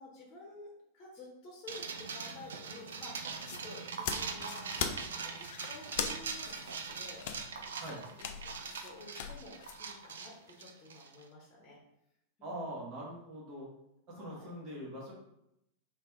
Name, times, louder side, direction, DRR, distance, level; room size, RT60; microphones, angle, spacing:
voice 1, 0.0-7.6 7.9-8.0 8.4-11.8 12.4-12.8 14.1-14.5, left 2 dB, 30° left, -3 dB, 1.0 m, -52 dB
sound 1, 1.7-11.2, right 5 dB, 65° right, 0.4 m, -42 dB
sound 2, 3.4-9.8, left 7 dB, 55° left, 0.4 m, -40 dB
voice 2, 12.4-13.7 14.1-15.1, right 1 dB, 40° right, -4 dB, 1.5 m, -42 dB
3.2 x 3.2 x 3.6 m, 0.81 s
figure-of-eight pair, 90°, 0 cm